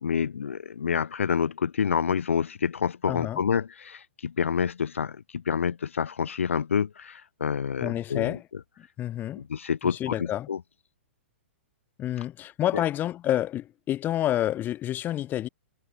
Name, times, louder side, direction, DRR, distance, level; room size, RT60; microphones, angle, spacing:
voice 1, 0.0-8.4 9.3-10.6 12.7-12.8, left 7 dB, 75° left, 1.5 m, -28 dB
voice 2, 3.1-3.4 7.8-8.4 9.0-9.4 9.8-10.5 12.0-15.5, left 12 dB, 25° left, 6.4 m, -28 dB
hypercardioid pair, 115°, 7 cm